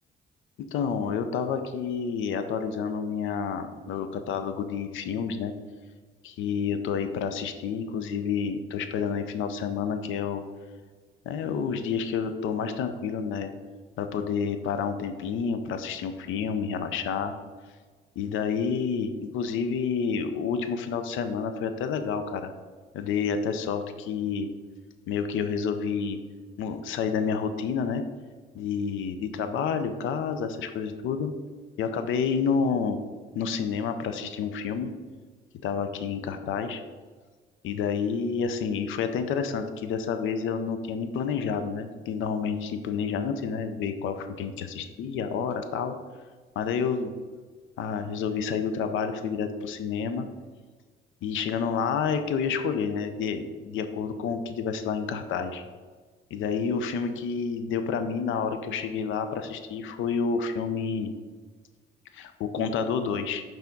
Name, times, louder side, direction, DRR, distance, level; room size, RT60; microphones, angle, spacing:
voice 1, 0.7-5.5 6.2-10.4 11.3-13.5 14.0-17.3 18.2-22.5 22.9-24.5 25.1-26.2 26.6-28.0 28.5-31.3 31.8-33.0 33.4-34.9 35.6-36.8 37.6-46.0 46.6-47.1 47.8-50.3 51.2-55.6 56.3-61.1 62.1-63.4, left 6 dB, 85° left, 8 dB, 0.5 m, -29 dB
5.8 x 3.5 x 5.1 m, 1.4 s
cardioid pair, 90°, 20 cm